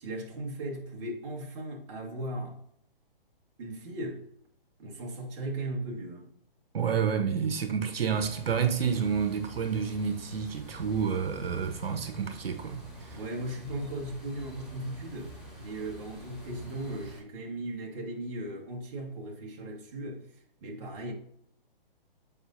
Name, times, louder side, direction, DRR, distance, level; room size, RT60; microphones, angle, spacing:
voice 1, 0.0-2.6 3.6-4.3 4.8-6.3 13.1-20.3 20.6-21.1, right 1 dB, 30° right, 1.6 m, -37 dB
voice 2, 6.7-13.2, right 7 dB, 85° right, 0.9 m, -29 dB
sound 1, 8.1-17.2, right 1 dB, ahead, 1.7 m, -47 dB
7.9 x 5.2 x 2.6 m
hypercardioid pair, 155°, 29 cm